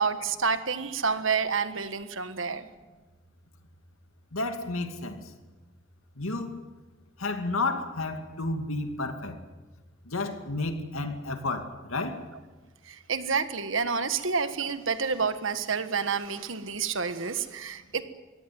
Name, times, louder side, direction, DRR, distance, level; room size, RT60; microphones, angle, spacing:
voice 1, 0.0-2.7 12.8-18.0, right 5 dB, 75° right, 1.5 m, -29 dB
voice 2, 4.3-5.2 6.2-6.6 7.2-9.4 10.1-12.3, left 2 dB, 90° left, 2.4 m, -31 dB
23.0 x 17.0 x 9.3 m
head